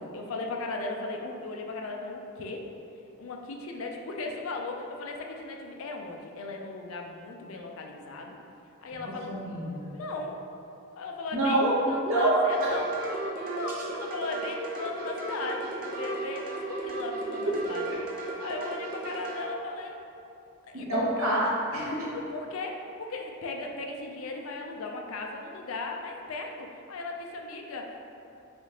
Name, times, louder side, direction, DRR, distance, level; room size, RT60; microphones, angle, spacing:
voice 1, 0.1-2.6 3.2-8.4 8.8-9.4 9.9-10.4 10.9-12.9 13.5-17.9 18.4-20.0 20.7-21.3 22.1-28.1, left 3 dB, 65° left, 2 dB, 0.4 m, -37 dB
voice 2, 9.0-9.9 11.3-11.7 12.0-12.7 20.7-22.1, right 1 dB, 65° right, -6 dB, 0.9 m, -26 dB
sound 1, 12.5-19.4, right 2 dB, 40° right, 0.5 m, -35 dB
3.5 x 3.4 x 2.8 m, 2.7 s
head